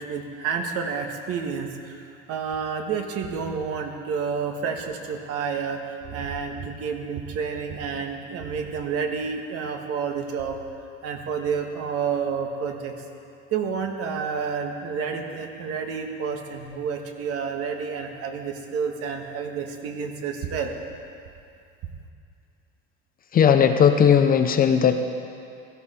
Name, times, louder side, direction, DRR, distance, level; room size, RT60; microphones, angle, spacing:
voice 1, 0.0-10.6 11.0-12.9 13.5-20.7, right 6 dB, 50° right, 4 dB, 1.5 m, -29 dB
voice 2, 23.3-25.0, left 8 dB, 30° left, 7 dB, 0.6 m, -17 dB
16.5 x 13.0 x 4.3 m, 2.5 s
cardioid pair, 135°, 30 cm